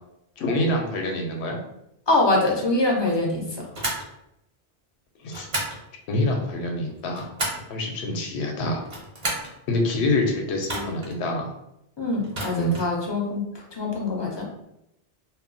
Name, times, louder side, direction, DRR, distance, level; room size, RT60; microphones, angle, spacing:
voice 1, 0.4-1.6 5.2-5.5 6.1-7.3 7.7-8.9 9.7-11.5 12.5-12.7, left 1 dB, 80° left, 2 dB, 0.9 m, -26 dB
voice 2, 2.1-3.4 12.0-13.5 13.8-14.5, left 2 dB, 35° left, -1 dB, 0.4 m, -23 dB
sound 1, 3.7-4.1 5.3-5.8 6.9-7.7 8.8-9.5 10.6-11.1 12.2-12.9, right 2 dB, 40° right, 0.8 m, -31 dB
2.2 x 2.1 x 3.8 m, 0.81 s
omnidirectional pair, 1.1 m